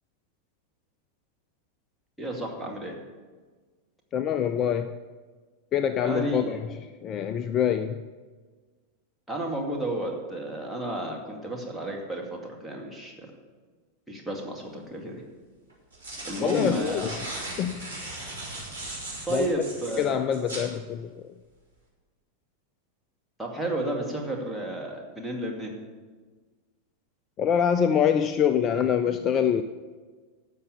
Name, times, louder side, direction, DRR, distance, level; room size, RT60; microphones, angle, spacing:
voice 1, 2.2-3.0 6.0-6.6 9.3-13.3 14.1-15.2 16.3-17.2 19.3-20.2 23.4-25.7, right 1 dB, ahead, -2 dB, 2.3 m, -32 dB
voice 2, 4.1-5.0 5.7-8.0 16.4-17.1 17.6-17.9 19.3-19.5 20.0-21.1 27.4-29.6, left 8 dB, 30° left, 11 dB, 0.4 m, -25 dB
sound 1, 14.6-14.7 15.7-20.7, right 2 dB, 80° right, 4.0 m, -38 dB
12.0 x 7.0 x 6.9 m, 1.4 s
figure-of-eight pair, 90°, 0 cm